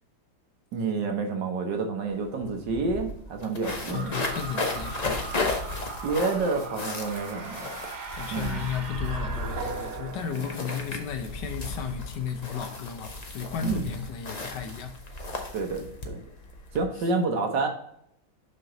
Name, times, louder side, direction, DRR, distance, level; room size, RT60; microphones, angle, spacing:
voice 1, 0.7-4.1 6.0-7.7 8.3-8.6 13.6-13.9 15.5-16.2 16.7-17.7, right 4 dB, 65° right, 1.6 m, -29 dB
sound 1, 2.1-2.2 2.4-16.8, left 2 dB, 50° left, 0.5 m, -35 dB
voice 2, 3.9-5.3 8.1-15.0, left 7 dB, 70° left, 1.3 m, -34 dB
sound 2, 3.9-10.3, right 4 dB, 45° right, 0.6 m, -40 dB
sound 3, 8.7-11.8, right 4 dB, 85° right, 1.7 m, -40 dB
6.1 x 5.7 x 3.8 m
omnidirectional pair, 2.1 m